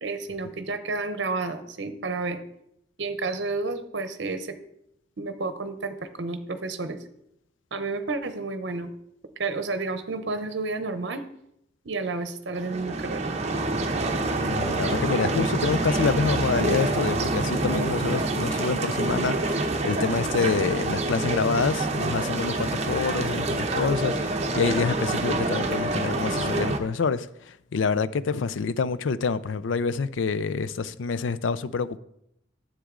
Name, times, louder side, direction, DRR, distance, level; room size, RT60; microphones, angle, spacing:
voice 1, 0.0-2.4 3.0-4.6 5.2-7.0 7.7-8.9 9.4-11.2 11.8-13.2, right 3 dB, 60° right, 0.8 m, -31 dB
sound 1, 12.5-26.8, right 2 dB, 35° right, 0.8 m, -27 dB
voice 2, 14.5-27.3 27.7-32.0, left 5 dB, 75° left, 0.4 m, -27 dB
10.0 x 7.5 x 3.7 m
head